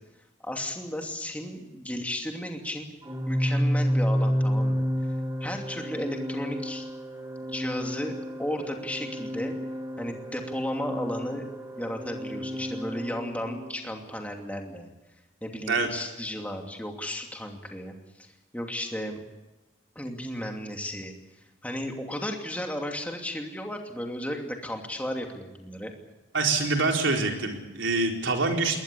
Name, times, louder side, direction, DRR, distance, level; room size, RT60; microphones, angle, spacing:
voice 1, 0.4-2.9 3.3-4.9 5.4-6.8 7.4-9.5 10.0-11.5 11.8-14.9 15.4-17.9 18.2-18.3 18.5-19.2 19.9-21.1 21.6-25.9, left 1 dB, 10° left, 2 dB, 2.7 m, -34 dB
Organ, 3.0-13.8, equal, 15° right, 1.9 m, -30 dB
voice 2, 26.3-28.8, right 3 dB, 75° right, 2 dB, 4.2 m, -25 dB
21.5 x 19.5 x 8.6 m, 1.0 s
head